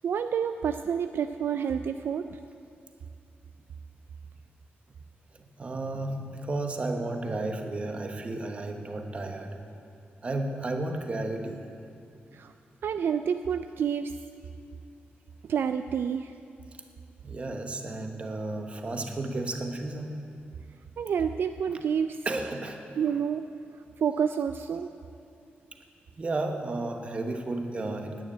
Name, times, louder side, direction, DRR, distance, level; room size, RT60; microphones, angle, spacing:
voice 1, 0.0-2.4 12.3-12.5 12.8-14.1 15.5-16.3 21.0-22.2 23.0-23.5 24.0-24.9, right 7 dB, 65° right, 8 dB, 0.3 m, -28 dB
voice 2, 5.6-9.6 10.2-11.6 17.2-20.1 22.2-22.8 26.2-28.2, right 2 dB, 30° right, 5 dB, 1.1 m, -33 dB
10.5 x 9.3 x 8.8 m, 2.6 s
wide cardioid pair, 150°, 4 cm